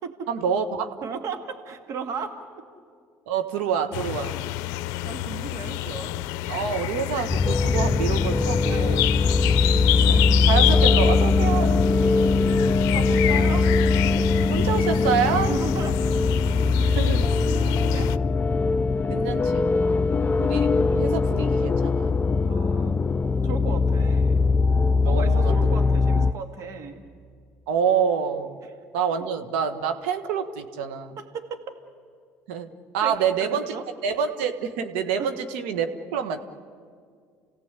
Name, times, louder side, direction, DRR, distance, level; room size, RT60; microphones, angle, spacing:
voice 1, 0.3-0.9 3.3-4.4 6.5-9.0 10.1-12.0 14.5-15.5 16.9-17.3 19.1-19.7 20.4-22.2 25.0-25.5 27.7-28.6 28.9-31.2 32.5-32.7 32.9-33.7 34.0-36.4, right 7 dB, 80° right, 7 dB, 1.5 m, -27 dB
voice 2, 1.0-2.3 4.3-4.4 5.0-6.1 8.6-9.0 12.9-13.7 15.5-16.0 17.5-18.1 19.8-20.2 22.4-23.1 23.4-24.4 25.0-27.0 28.6-28.7 31.2-31.6 33.0-33.8 35.2-35.3, right 5 dB, 60° right, 6 dB, 2.1 m, -36 dB
sound 1, 3.9-18.2, left 16 dB, 75° left, 0.5 m, -28 dB
sound 2, 7.3-26.3, left 3 dB, 25° left, 0.6 m, -21 dB
29.5 x 17.0 x 8.3 m, 2.1 s
hypercardioid pair, 70°, 6 cm